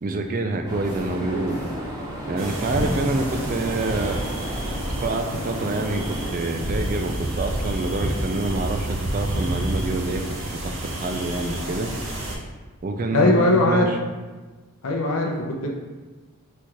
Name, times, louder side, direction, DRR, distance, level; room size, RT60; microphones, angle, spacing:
voice 1, 0.0-1.6 2.3-4.2 5.0-11.9 12.8-13.9, right 2 dB, 35° right, 5 dB, 0.3 m, -27 dB
sound 1, 0.7-6.3, right 1 dB, 15° right, 0.7 m, -33 dB
sound 2, 2.4-12.4, right 1 dB, 60° right, 0.8 m, -29 dB
voice 2, 13.1-13.9 14.8-15.7, left 2 dB, 70° left, 0 dB, 0.5 m, -20 dB
4.2 x 2.4 x 4.6 m, 1.3 s
head